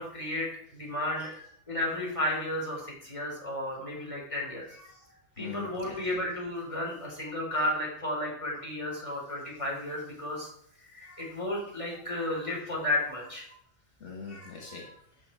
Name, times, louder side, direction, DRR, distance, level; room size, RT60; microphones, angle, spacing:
voice 1, 0.0-1.3 1.7-4.7 5.4-10.5 10.8-13.5, left 1 dB, 25° left, -3 dB, 4.2 m, -33 dB
voice 2, 4.6-6.2 7.5-7.7 8.5-9.2 9.9-10.0 11.0-11.3 12.1-12.5 13.2-13.3 14.0-15.0, left 5 dB, 70° left, 0 dB, 1.9 m, -45 dB
12.0 x 8.6 x 4.6 m, 0.66 s
omnidirectional pair, 1.3 m